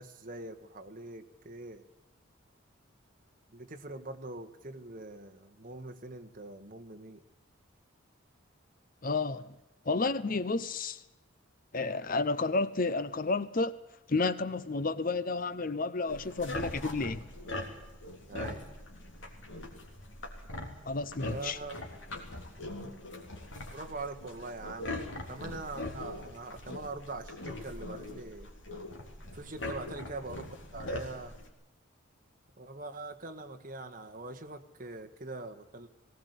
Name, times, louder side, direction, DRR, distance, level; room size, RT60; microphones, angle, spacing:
voice 1, 0.0-1.8 3.5-7.2 18.3-18.6 21.2-21.8 23.7-25.0 25.3-28.5 29.3-31.3 32.6-35.9, right 2 dB, 40° right, 1.6 m, -43 dB
voice 2, 9.0-9.5 9.9-11.0 11.7-13.8 14.1-17.3 20.8-21.6, left 3 dB, 40° left, 0.7 m, -31 dB
sound 1, 16.1-31.5, left 1 dB, 65° left, 3.5 m, -42 dB
19.5 x 18.0 x 8.2 m
head